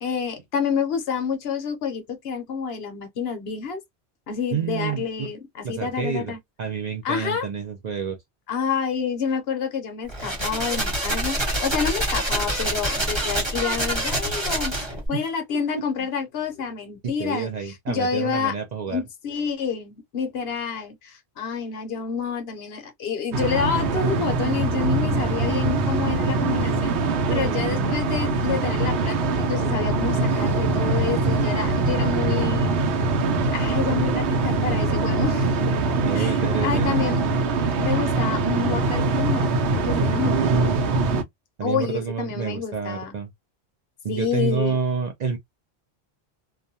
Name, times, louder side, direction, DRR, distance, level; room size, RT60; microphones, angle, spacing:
voice 1, 0.0-3.8 4.3-5.4 5.7-6.4 7.0-7.5 8.5-14.7 15.1-18.5 18.9-32.7 33.5-35.7 36.1-36.3 36.6-37.2 37.8-40.4 41.6-43.1 44.1-44.8, left 6 dB, 70° left, 0.9 m, -28 dB
voice 2, 4.5-5.3 5.6-8.2 15.1-15.3 15.7-15.8 17.0-19.0 26.3-26.7 27.3-28.0 36.0-37.0 40.2-40.8 41.6-43.3 44.0-45.4, right 6 dB, 55° right, 0.5 m, -29 dB
sound 1, 10.1-15.1, right 1 dB, 25° right, 1.1 m, -26 dB
sound 2, 23.3-41.2, right 3 dB, 85° right, 0.9 m, -23 dB
2.4 x 2.2 x 2.6 m
omnidirectional pair, 1.1 m